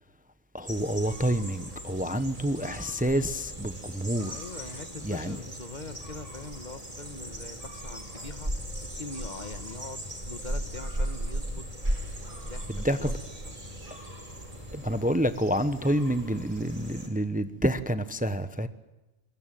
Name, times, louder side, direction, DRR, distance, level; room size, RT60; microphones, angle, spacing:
voice 1, 0.5-4.3 5.0-5.4 12.7-13.1 14.7-18.7, right 1 dB, 10° right, 0.9 m, -28 dB
sound 1, 0.6-17.1, right 1 dB, 35° right, 4.8 m, -37 dB
voice 2, 2.1-2.4 3.8-4.0 4.2-8.5 9.0-11.7 12.3-13.2 13.4-13.5, left 3 dB, 45° left, 1.5 m, -43 dB
23.5 x 21.5 x 9.1 m
omnidirectional pair, 1.1 m